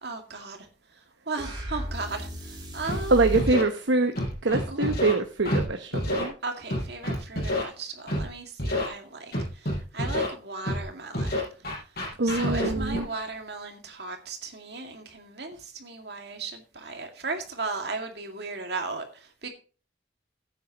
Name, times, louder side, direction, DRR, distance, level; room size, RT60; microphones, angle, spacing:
voice 1, 0.0-3.3 4.7-5.2 6.4-11.8 12.2-19.5, right 3 dB, 65° right, 2.2 m, -36 dB
sound 1, 1.4-3.5, equal, 25° right, 3.1 m, -34 dB
Scratching (performance technique), 2.8-3.0 3.3-3.6 4.2-5.1 5.5-5.6 5.9-6.3 6.7-7.6 8.1-8.2 8.6-8.9 9.3-10.3 10.7-10.8 11.1-13.0, left 1 dB, 55° left, 5.0 m, -28 dB
voice 2, 3.1-4.1 4.4-6.3 7.6-7.7 12.2-13.1, right 3 dB, 90° right, 1.0 m, -24 dB
14.5 x 9.3 x 3.0 m
head